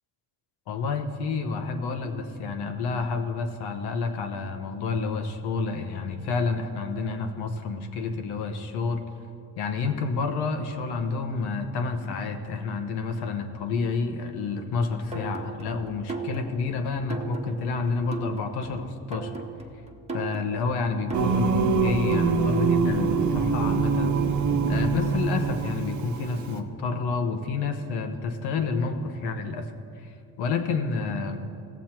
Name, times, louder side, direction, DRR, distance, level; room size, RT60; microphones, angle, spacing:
voice 1, 0.7-9.0 9.6-19.4 20.1-24.2 24.7-29.7 29.9-31.4, left 4 dB, 85° left, 6 dB, 1.0 m, -29 dB
sound 1, 15.1-22.9, right 4 dB, 15° right, 1.1 m, -38 dB
Singing, 21.1-26.6, right 5 dB, 50° right, 0.8 m, -24 dB
16.5 x 7.2 x 4.4 m, 2.6 s
cardioid pair, 90°, 38 cm